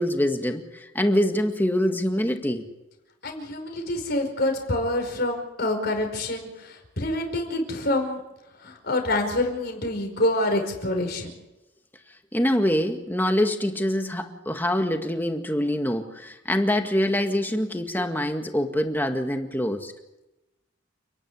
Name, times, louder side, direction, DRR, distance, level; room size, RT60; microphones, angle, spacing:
voice 1, 0.0-2.7 12.3-19.9, left 1 dB, 10° left, 5 dB, 1.9 m, -25 dB
voice 2, 3.2-8.2 8.6-11.4, left 1 dB, 50° left, 3 dB, 5.1 m, -26 dB
30.0 x 10.5 x 9.4 m, 0.98 s
head